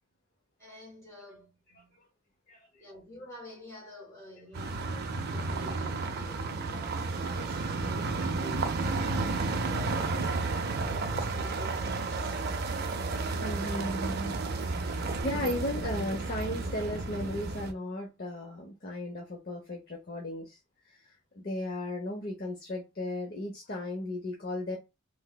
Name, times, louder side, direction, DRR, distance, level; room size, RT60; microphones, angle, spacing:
voice 1, 0.6-2.0 2.8-7.7 8.2-12.4, equal, 15° left, 2.0 m, -49 dB
sound 1, 4.5-17.7, right 3 dB, 45° right, 0.4 m, -32 dB
voice 2, 13.1-20.6 20.9-24.8, left 1 dB, 45° left, 0.7 m, -36 dB
3.4 x 2.9 x 2.2 m
head